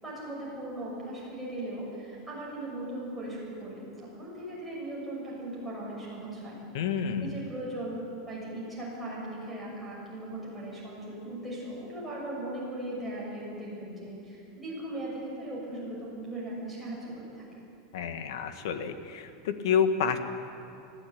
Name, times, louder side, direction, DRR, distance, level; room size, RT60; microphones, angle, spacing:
voice 1, 0.0-6.6 7.2-17.6, right 1 dB, ahead, -7 dB, 6.9 m, -38 dB
voice 2, 6.7-7.4 17.9-20.2, left 7 dB, 70° left, 8 dB, 1.7 m, -29 dB
20.5 x 16.0 x 8.8 m, 2.6 s
supercardioid pair, 165°, 2 cm